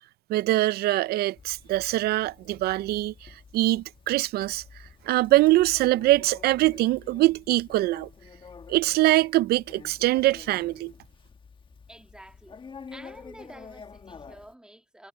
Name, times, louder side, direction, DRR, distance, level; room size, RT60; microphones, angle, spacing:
voice 1, 0.3-4.6 5.0-8.1 8.7-10.9, right 17 dB, 70° right, 0.4 m, -23 dB
Conversation, 1.4-14.5, left 5 dB, 30° left, 1.4 m, -48 dB
voice 2, 11.9-12.6 12.9-15.1, right 1 dB, 5° right, 2.0 m, -49 dB
cardioid pair, 110°, 17 cm